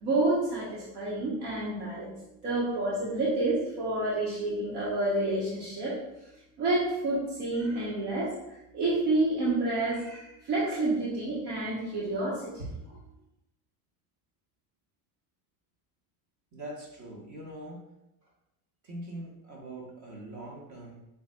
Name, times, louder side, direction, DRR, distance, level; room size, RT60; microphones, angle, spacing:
voice 1, 0.0-2.1 2.4-6.0 6.6-8.3 8.7-13.0, right 2 dB, 70° right, -8 dB, 1.5 m, -29 dB
voice 2, 16.5-17.9 18.2-18.3 18.8-21.1, right 1 dB, 40° right, -2 dB, 1.4 m, -43 dB
7.0 x 2.6 x 2.5 m, 0.87 s
supercardioid pair, 95°, 44 cm